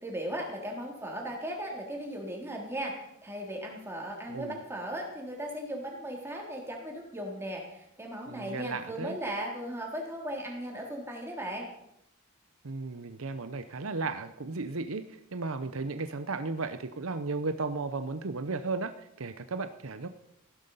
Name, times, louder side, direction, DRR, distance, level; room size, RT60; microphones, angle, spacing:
voice 1, 0.0-3.0 3.2-11.7, right 1 dB, 10° right, 0 dB, 3.5 m, -37 dB
voice 2, 8.3-9.2 12.6-20.1, right 3 dB, 70° right, 10 dB, 0.8 m, -35 dB
16.0 x 12.0 x 5.6 m, 0.80 s
head